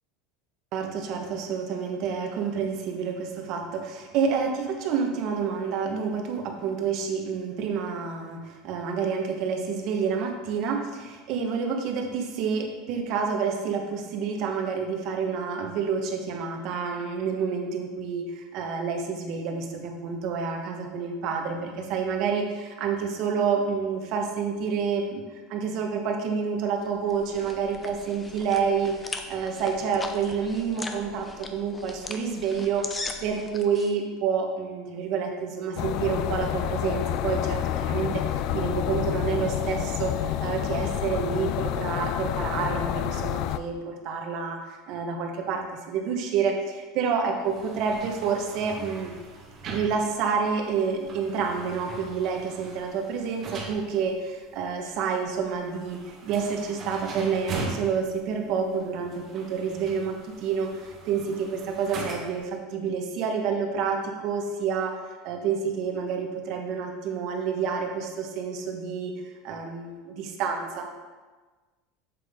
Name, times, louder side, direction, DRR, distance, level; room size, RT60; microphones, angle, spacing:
voice 1, 0.7-25.2 25.5-49.1 49.6-65.0 65.2-69.1 69.4-70.9, right 6 dB, 50° right, 3 dB, 1.3 m, -29 dB
sound 1, 26.8-33.9, left 3 dB, 15° left, 0.6 m, -39 dB
sound 2, 35.8-43.6, left 12 dB, 55° left, 0.4 m, -28 dB
sound 3, 47.4-62.5, right 3 dB, 35° right, 1.5 m, -41 dB
7.6 x 7.5 x 3.7 m, 1.3 s
supercardioid pair, 140°, 0 cm